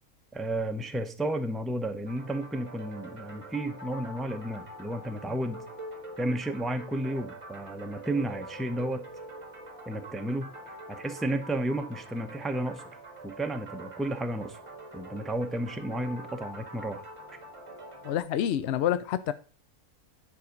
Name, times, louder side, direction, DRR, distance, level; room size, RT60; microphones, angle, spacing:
voice 1, 0.3-5.6 6.2-9.0 9.9-12.9 13.2-14.6 14.9-17.0, right 1 dB, ahead, 0.4 m, -32 dB
sound 1, 2.1-18.2, right 1 dB, 20° right, 1.5 m, -45 dB
voice 2, 18.0-19.3, left 10 dB, 65° left, 0.7 m, -27 dB
9.6 x 4.9 x 5.1 m
omnidirectional pair, 1.5 m